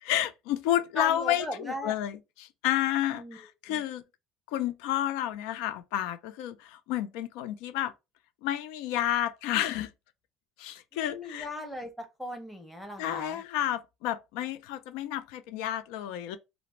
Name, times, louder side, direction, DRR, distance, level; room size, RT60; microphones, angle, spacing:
voice 1, 0.0-4.0 4.5-7.9 8.4-9.9 10.6-11.5 13.0-16.4, left 12 dB, 90° left, 0.3 m, -31 dB
voice 2, 1.0-1.9 3.1-3.4 3.7-3.8 10.9-13.4, left 1 dB, ahead, 0.7 m, -38 dB
2.5 x 2.0 x 2.9 m
cardioid pair, 135°, 0 cm